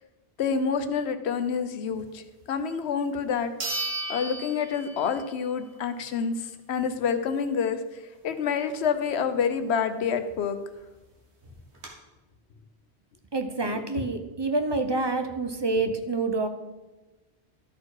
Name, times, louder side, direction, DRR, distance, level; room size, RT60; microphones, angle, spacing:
voice 1, 0.4-3.5 4.1-10.6 14.0-14.1, left 6 dB, 75° left, 10 dB, 1.0 m, -28 dB
Single Sword Clash, 2.8-2.9 3.6-5.4 5.7-5.8 10.5-10.6 10.8-10.9 11.4-11.9, right 2 dB, 85° right, 1.8 m, -34 dB
voice 2, 13.3-16.5, right 3 dB, 30° right, 6 dB, 0.5 m, -27 dB
12.5 x 4.3 x 4.7 m, 1.1 s
omnidirectional pair, 1.1 m